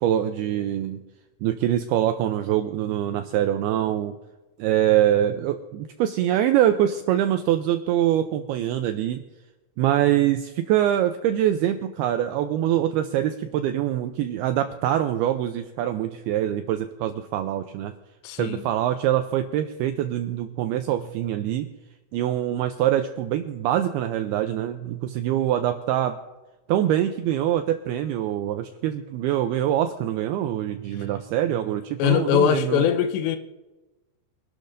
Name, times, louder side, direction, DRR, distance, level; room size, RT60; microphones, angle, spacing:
voice 1, 0.0-1.0 1.4-4.2 4.6-9.2 9.8-17.9 18.4-21.7 22.1-26.2 26.7-32.9, right 11 dB, 90° right, 2.2 m, -24 dB
voice 2, 18.2-18.6 32.0-33.4, left 9 dB, 85° left, 3.0 m, -21 dB
24.5 x 12.0 x 2.6 m
omnidirectional pair, 5.1 m